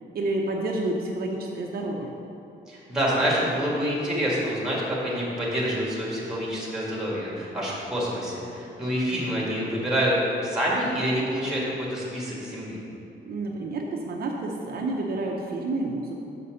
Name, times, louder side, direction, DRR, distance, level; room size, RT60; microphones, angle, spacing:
voice 1, 0.1-2.1 13.3-16.1, right 2 dB, 55° right, -1 dB, 0.7 m, -29 dB
voice 2, 2.7-10.2 10.4-11.6 11.9-12.8, equal, 5° right, -6 dB, 1.8 m, -27 dB
6.7 x 5.6 x 6.4 m, 2.9 s
wide cardioid pair, 175°, 19 cm